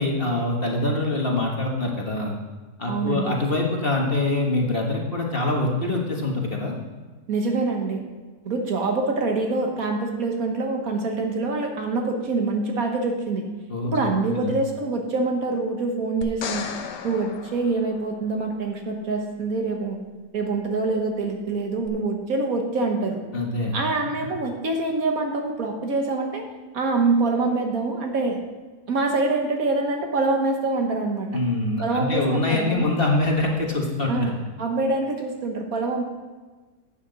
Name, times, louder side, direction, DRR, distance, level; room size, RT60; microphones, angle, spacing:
voice 1, 0.0-2.3 2.8-6.7 13.7-14.0 14.3-14.5 23.3-23.8 31.3-34.1, left 2 dB, 35° left, -1 dB, 1.5 m, -24 dB
voice 2, 2.9-3.4 7.3-8.0 8.4-13.5 13.8-16.7 17.0-20.0 20.3-23.2 23.7-26.4 26.7-28.4 28.9-31.3 31.8-32.9 34.1-36.0, right 3 dB, 60° right, 2 dB, 1.6 m, -25 dB
sound 1, 16.2-18.5 21.9-22.0, left 7 dB, 90° left, 1.4 m, -35 dB
11.0 x 8.7 x 3.9 m, 1.3 s
omnidirectional pair, 1.7 m